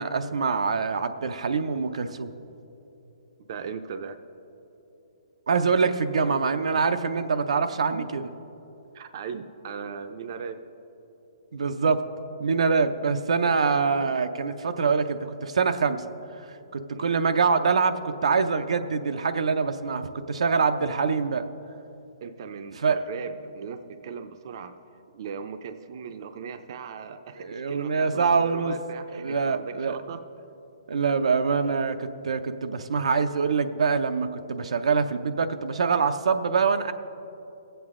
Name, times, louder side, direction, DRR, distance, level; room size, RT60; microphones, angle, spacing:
voice 1, 0.0-2.3 5.5-8.3 11.5-12.0 12.4-16.0 16.5-21.5 22.8-23.0 27.4-28.7 29.1-30.0 30.9-36.9, right 5 dB, 85° right, 8 dB, 0.6 m, -25 dB
voice 2, 3.4-4.2 7.9-8.0 8.9-10.6 16.9-17.3 22.2-24.8 25.1-30.2, right 6 dB, 45° right, 9 dB, 0.5 m, -38 dB
19.5 x 8.0 x 3.7 m, 3.0 s
hypercardioid pair, 165°, 3 cm